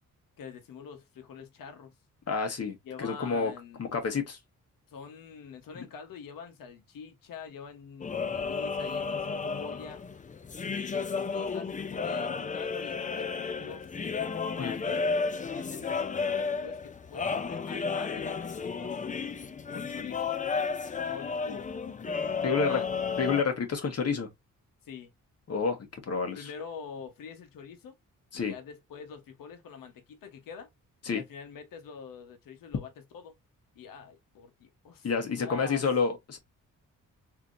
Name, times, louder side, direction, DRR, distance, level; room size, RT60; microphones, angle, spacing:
voice 1, 0.4-1.9 2.8-4.0 4.9-10.0 10.8-13.9 14.6-15.1 15.5-19.0 19.7-20.3 21.1-21.7 22.4-22.8 24.8-25.1 26.3-28.0 28.3-30.7 31.0-33.4 33.7-35.8, left 6 dB, 85° left, 1.0 m, -45 dB
voice 2, 2.3-3.5 3.8-4.4 14.6-14.7 22.4-22.8 23.2-24.3 25.5-26.5 28.3-28.5 31.0-31.2 35.0-36.4, left 5 dB, 50° left, 1.2 m, -29 dB
sound 1, 8.0-23.4, left 5 dB, 25° left, 0.4 m, -32 dB
3.4 x 2.9 x 2.5 m
cardioid pair, 95°, 33 cm